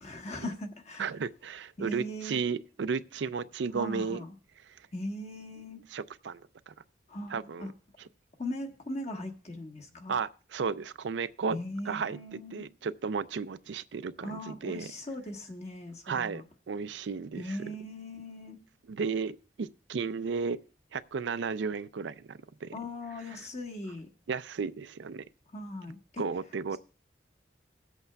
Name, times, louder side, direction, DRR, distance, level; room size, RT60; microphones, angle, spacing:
voice 1, 0.0-1.1 1.8-2.4 3.7-4.3 4.9-5.8 7.1-7.7 8.4-10.1 11.5-12.7 14.2-16.4 17.3-18.6 22.7-24.1 25.5-26.2, left 1 dB, 40° left, 1.3 m, -39 dB
voice 2, 1.0-4.2 4.7-4.9 5.9-6.7 7.3-7.7 10.1-11.6 11.9-12.2 12.5-14.9 16.1-17.7 18.9-20.6 20.9-22.7 23.3-23.4 24.3-25.2 26.2-26.8, right 5 dB, 90° right, 0.4 m, -34 dB
18.0 x 8.0 x 2.3 m
head